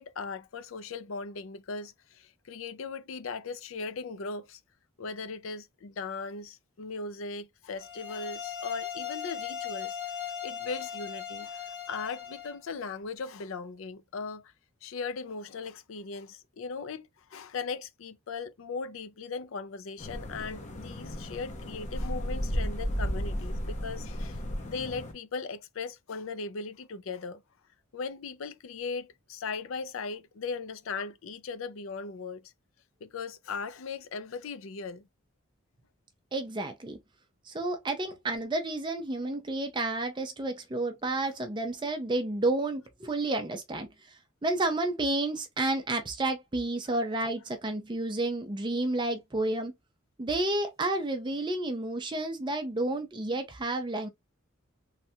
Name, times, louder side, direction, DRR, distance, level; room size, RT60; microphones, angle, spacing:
voice 1, 0.0-4.6 5.0-10.0 10.4-14.5 14.8-27.4 27.9-32.5 33.0-35.0, left 4 dB, 75° left, 0.4 m, -38 dB
sound 1, 7.8-12.6, left 8 dB, 50° left, 1.3 m, -38 dB
sound 2, 20.0-25.1, equal, 35° left, 0.7 m, -34 dB
voice 2, 36.3-37.0 37.5-49.7 50.2-54.1, right 2 dB, 20° right, 0.5 m, -31 dB
3.1 x 2.4 x 2.7 m
head